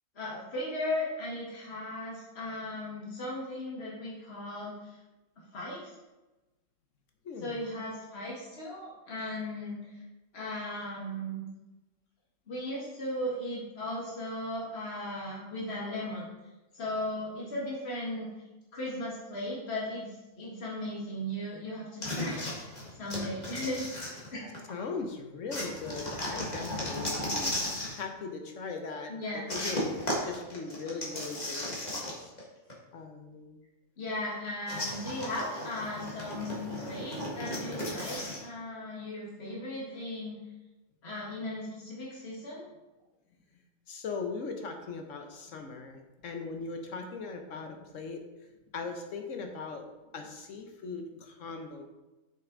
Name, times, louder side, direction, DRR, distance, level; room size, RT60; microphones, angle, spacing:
voice 1, 0.2-5.0 5.5-6.0 7.4-10.0 10.3-11.4 12.5-16.3 16.7-18.3 18.7-22.5 22.9-23.9 24.3-24.6 29.1-29.5 34.0-40.4 41.0-42.7, left 1 dB, 50° left, -6 dB, 2.0 m, -37 dB
voice 2, 7.2-7.6 24.7-27.7 27.9-29.9 30.2-32.3 32.9-33.6 43.9-48.2 48.7-49.8 50.1-51.9, left 4 dB, 70° left, 4 dB, 1.3 m, -39 dB
sound 1, 22.0-24.7 25.5-28.0 29.5-32.4 32.7-32.8 34.7-38.4, left 1 dB, 30° left, 1.7 m, -35 dB
6.8 x 5.7 x 3.9 m, 1.1 s
omnidirectional pair, 1.4 m